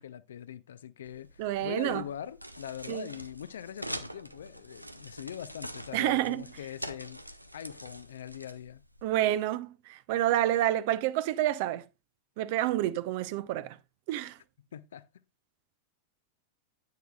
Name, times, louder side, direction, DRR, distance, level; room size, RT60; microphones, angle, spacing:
voice 1, 0.0-8.8 14.7-15.2, left 10 dB, 65° left, 0.6 m, -42 dB
sound 1, 1.0-9.1, equal, 90° right, 0.7 m, -45 dB
voice 2, 1.4-2.0 2.9-3.1 5.9-6.4 9.0-11.9 12.4-13.8 14.1-14.4, right 13 dB, 50° right, 0.8 m, -28 dB
10.5 x 9.4 x 2.4 m
figure-of-eight pair, 90°, 0 cm